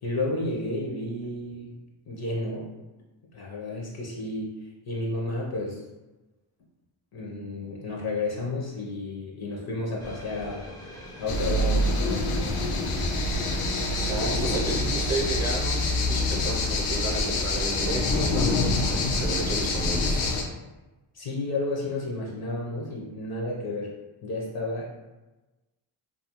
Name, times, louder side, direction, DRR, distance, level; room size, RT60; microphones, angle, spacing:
voice 1, 0.0-1.8 2.1-2.7 3.3-5.8 7.1-12.3 21.1-23.9 24.2-24.9, left 2 dB, 50° left, -3 dB, 0.6 m, -32 dB
sound 1, 10.0-15.6, equal, 10° left, 0.5 m, -42 dB
sound 2, 11.3-20.4, left 2 dB, 90° left, 0.6 m, -26 dB
voice 2, 14.0-18.6 18.9-20.3, right 2 dB, 30° right, -1 dB, 0.7 m, -33 dB
2.4 x 2.3 x 2.8 m, 1.1 s
cardioid pair, 95°, 50 cm